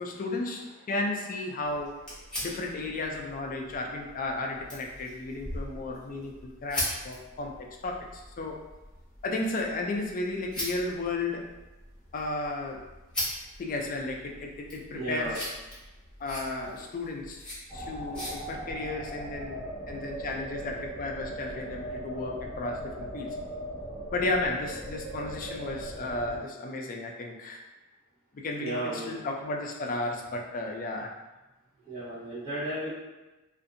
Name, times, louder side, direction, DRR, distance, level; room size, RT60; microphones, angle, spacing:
voice 1, 0.0-2.0 2.4-8.6 9.2-11.5 12.1-12.9 13.6-15.5 16.2-17.4 17.7-23.4 24.1-27.6 28.3-31.1, left 2 dB, 40° left, 2 dB, 0.3 m, -34 dB
sound 1, 1.6-18.3, left 1 dB, 5° left, 1.1 m, -41 dB
voice 2, 14.9-15.4 28.6-29.2 31.9-32.9, right 1 dB, 45° right, -14 dB, 1.1 m, -34 dB
sound 2, 17.7-26.4, right 1 dB, 20° right, 0.6 m, -38 dB
2.6 x 2.5 x 2.5 m, 1.1 s
head